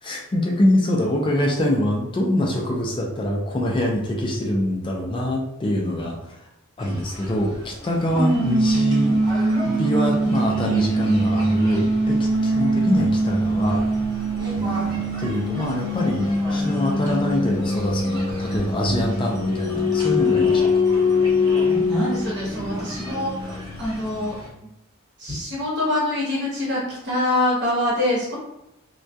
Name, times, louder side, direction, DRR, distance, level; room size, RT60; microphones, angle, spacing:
voice 1, 0.0-6.4 6.8-13.8 14.5-20.8, left 1 dB, 25° left, -1 dB, 0.3 m, -24 dB
sound 1, 6.8-24.5, equal, 20° right, 0.8 m, -23 dB
voice 2, 21.6-24.3 25.2-28.4, left 1 dB, 55° right, -5 dB, 1.1 m, -25 dB
2.2 x 2.2 x 2.6 m, 0.87 s
head